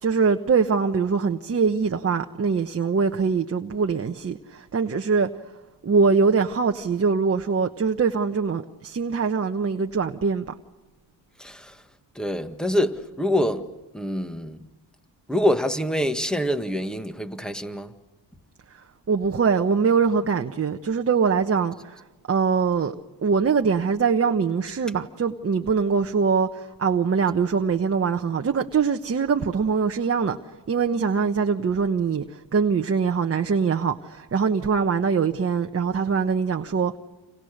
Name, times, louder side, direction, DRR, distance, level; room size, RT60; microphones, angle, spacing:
voice 1, 0.0-5.3 5.8-10.5 19.1-22.9 23.2-30.4 30.7-37.0, right 5 dB, 30° right, 1.2 m, -23 dB
voice 2, 11.4-11.8 12.2-13.7 13.9-14.6 15.3-17.9, left 1 dB, ahead, 1.8 m, -25 dB
29.5 x 27.0 x 6.6 m
cardioid pair, 85°, 45 cm